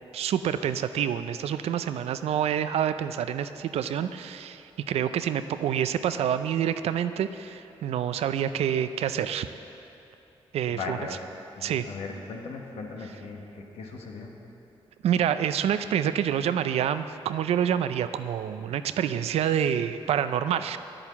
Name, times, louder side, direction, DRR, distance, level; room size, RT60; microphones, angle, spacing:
voice 1, 0.1-9.5 10.5-11.0 11.6-11.8 15.0-20.8, right 9 dB, 85° right, 11 dB, 0.5 m, -27 dB
voice 2, 10.7-11.1 11.5-14.3, left 4 dB, 90° left, 1 dB, 1.4 m, -38 dB
9.9 x 8.8 x 7.1 m, 2.9 s
cardioid pair, 65°, 10 cm